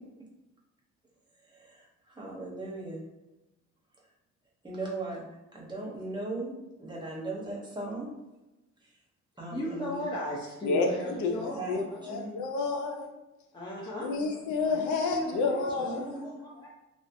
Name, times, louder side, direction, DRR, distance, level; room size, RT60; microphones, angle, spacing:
voice 1, 1.5-3.0 4.6-5.2 5.5-8.1 9.4-10.0 11.5-12.3 14.2-14.3 15.2-15.5 15.8-16.4, right 2 dB, 15° right, -4 dB, 0.9 m, -38 dB
voice 2, 9.5-12.3 13.5-14.1 14.6-16.7, left 1 dB, 15° left, -6 dB, 0.7 m, -37 dB
voice 3, 10.6-13.1 14.0-16.1, left 3 dB, 70° left, 4 dB, 0.6 m, -30 dB
3.1 x 2.0 x 2.5 m, 1.0 s
cardioid pair, 90°, 30 cm